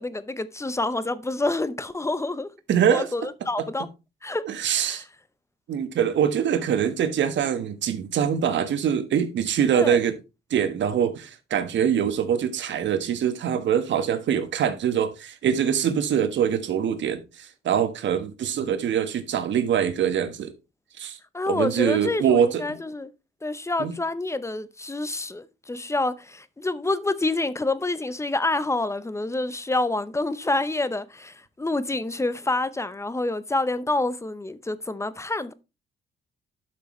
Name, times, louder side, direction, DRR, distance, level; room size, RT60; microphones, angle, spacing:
voice 1, 0.0-2.5 2.9-3.9 4.2-4.4 4.8-5.0 9.7-10.0 21.3-23.1 23.4-35.5, left 2 dB, 15° left, 0.8 m, -27 dB
voice 2, 2.7-3.1 3.6-3.7 4.4-5.0 5.7-10.2 10.5-20.5 21.0-21.2 21.5-22.8 23.8-23.9, right 8 dB, 65° right, 1.4 m, -24 dB
11.5 x 6.2 x 3.2 m
cardioid pair, 90°, 20 cm